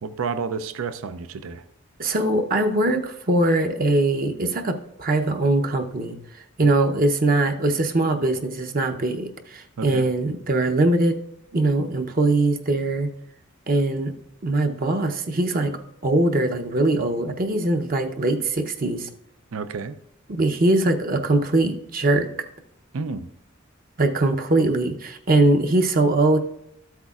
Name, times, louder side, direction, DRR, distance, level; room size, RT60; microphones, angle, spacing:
voice 1, 0.0-1.6 9.8-10.1 19.5-20.0 22.9-23.3, right 5 dB, 85° right, 13 dB, 0.5 m, -30 dB
voice 2, 2.0-6.2 6.6-11.2 11.5-13.1 13.7-14.1 14.4-15.7 16.0-19.1 20.3-22.3 24.0-26.4, right 2 dB, 45° right, 5 dB, 0.7 m, -21 dB
13.0 x 8.1 x 2.4 m, 0.76 s
head